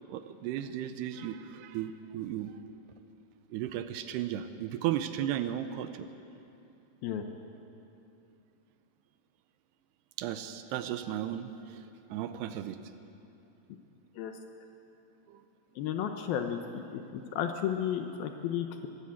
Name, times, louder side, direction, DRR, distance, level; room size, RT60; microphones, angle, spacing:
voice 1, 0.1-2.6 3.5-6.1 10.2-11.8 12.1-12.8 15.3-15.4, right 11 dB, 80° right, 10 dB, 2.6 m, -35 dB
voice 2, 15.8-16.8 17.1-18.9, left 9 dB, 75° left, 6 dB, 2.4 m, -33 dB
22.0 x 15.5 x 8.6 m, 2.9 s
omnidirectional pair, 5.0 m